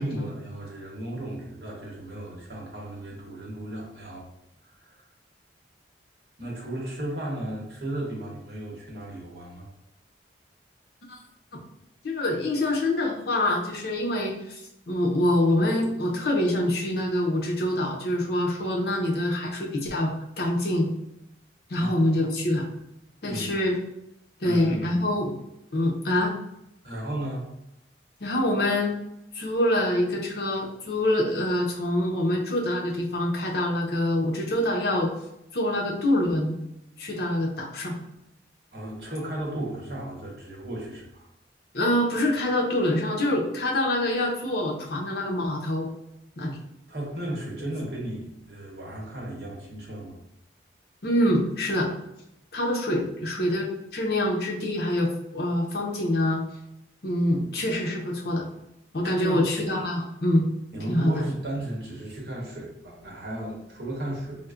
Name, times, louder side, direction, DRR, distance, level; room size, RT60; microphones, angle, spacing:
voice 1, 0.0-4.3 4.6-5.1 6.4-9.7 21.8-21.9 23.3-23.6 24.4-25.0 26.8-27.5 38.7-41.3 46.9-50.2 59.0-59.4 60.7-64.5, right 1 dB, 60° right, -3 dB, 0.9 m, -35 dB
voice 2, 12.0-14.6 14.9-20.1 20.4-20.9 21.7-22.7 23.2-23.8 24.4-25.4 25.7-26.3 28.2-29.0 29.3-35.1 35.5-36.6 37.0-38.0 41.7-45.9 46.4-46.6 51.0-51.9 52.5-56.4 57.0-58.5 58.9-60.5 60.9-61.2, left 1 dB, 60° left, -1 dB, 0.6 m, -25 dB
4.1 x 2.1 x 2.4 m, 0.84 s
head